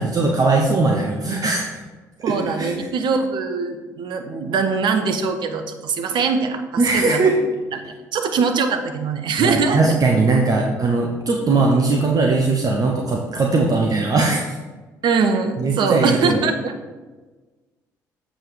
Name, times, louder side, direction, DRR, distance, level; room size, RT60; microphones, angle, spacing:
voice 1, 0.0-1.6 2.2-2.7 6.8-7.4 9.4-14.5 15.6-16.4, right 3 dB, 40° right, 1 dB, 1.0 m, -19 dB
voice 2, 2.2-7.2 8.1-10.0 15.0-16.7, right 5 dB, 55° right, 7 dB, 1.0 m, -22 dB
7.7 x 5.1 x 5.0 m, 1.3 s
hypercardioid pair, 55°, 9 cm